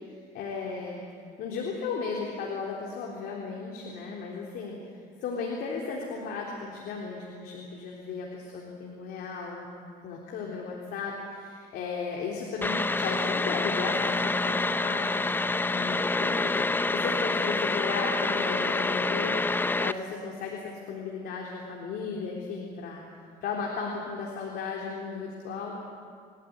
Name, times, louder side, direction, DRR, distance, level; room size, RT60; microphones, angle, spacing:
voice 1, 0.3-1.0 1.4-4.8 5.2-9.7 10.0-19.4 19.8-23.0 23.4-25.8, left 5 dB, 75° left, -2 dB, 3.7 m, -35 dB
sound 1, 12.6-19.9, left 3 dB, 10° left, 0.6 m, -27 dB
29.0 x 13.5 x 9.6 m, 2.1 s
cardioid pair, 110°, 17 cm